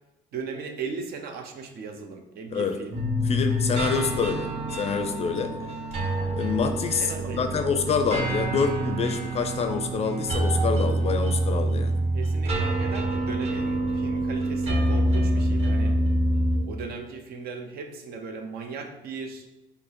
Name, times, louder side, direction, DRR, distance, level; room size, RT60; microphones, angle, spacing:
voice 1, 0.3-3.0 5.6-5.8 7.0-7.6 12.1-16.0 16.6-19.5, right 5 dB, 65° right, 5 dB, 0.6 m, -37 dB
sound 1, 2.9-16.6, right 1 dB, 40° right, 1.1 m, -26 dB
voice 2, 3.2-5.5 6.3-11.9, left 5 dB, 40° left, 7 dB, 0.4 m, -27 dB
5.2 x 2.0 x 4.2 m, 0.98 s
cardioid pair, 110°, 17 cm